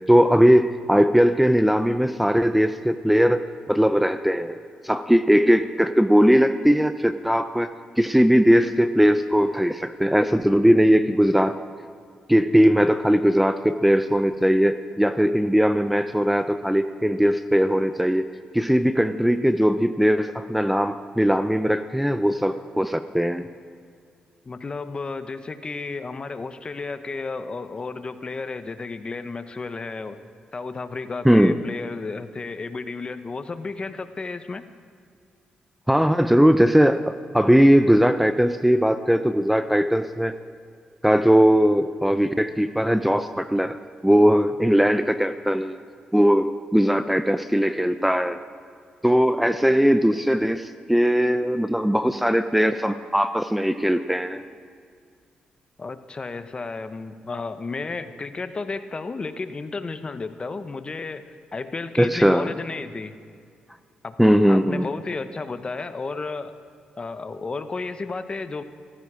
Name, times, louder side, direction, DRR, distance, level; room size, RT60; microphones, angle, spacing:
voice 1, 0.0-3.4 3.7-4.6 4.8-11.6 12.3-18.3 18.5-23.5 31.2-31.6 35.9-40.4 41.0-43.8 44.0-45.8 46.1-48.4 49.0-54.4 62.0-62.5 64.2-64.9, equal, 5° right, 11 dB, 0.5 m, -19 dB
voice 2, 24.5-30.2 30.5-34.6 55.8-63.2 64.0-64.2 64.5-66.5 67.0-68.6, left 3 dB, 35° left, 11 dB, 0.9 m, -32 dB
15.5 x 14.5 x 5.0 m, 2.2 s
cardioid pair, 70°, 3 cm